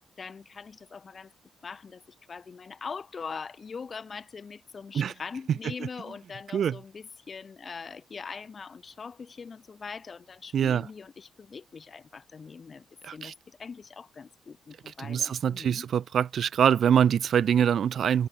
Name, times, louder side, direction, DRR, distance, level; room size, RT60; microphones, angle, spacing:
voice 1, 0.2-1.3 1.6-2.0 2.3-12.9 13.1-15.9, left 5 dB, 35° left, 3.1 m, -42 dB
voice 2, 10.5-10.9 13.0-13.3 15.0-18.3, right 8 dB, 55° right, 0.9 m, -24 dB
cardioid pair, 140°, 0 cm